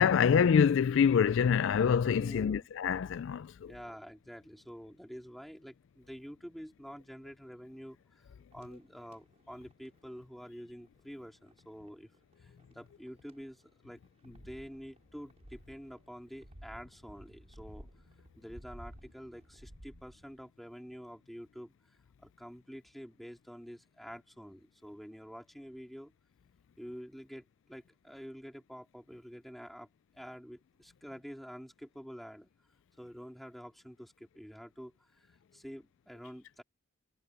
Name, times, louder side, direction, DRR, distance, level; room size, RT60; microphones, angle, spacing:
voice 1, 0.0-3.7, left 7 dB, 60° left, 0.3 m, -25 dB
voice 2, 2.2-2.7 3.7-8.3 8.5-12.1 12.4-17.9 18.4-21.7 22.2-26.1 26.8-29.9 30.1-32.5 33.0-36.6, equal, ahead, 3.6 m, -48 dB
sound 1, 8.0-19.7, right 2 dB, 30° right, 5.5 m, -73 dB
sound 2, 14.3-20.4, equal, 50° right, 5.1 m, -53 dB
head